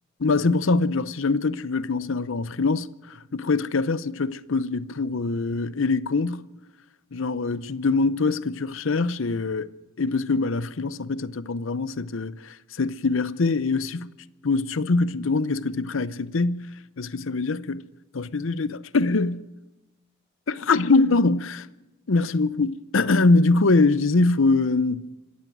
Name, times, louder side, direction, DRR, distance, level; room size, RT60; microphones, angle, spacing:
voice 1, 0.2-2.9 3.3-6.5 7.1-9.7 10.0-14.1 14.4-16.7 17.0-17.8 18.1-19.5 20.5-21.6 22.1-25.1, left 3 dB, 65° left, 0.7 m, -23 dB
25.5 x 14.0 x 9.2 m
head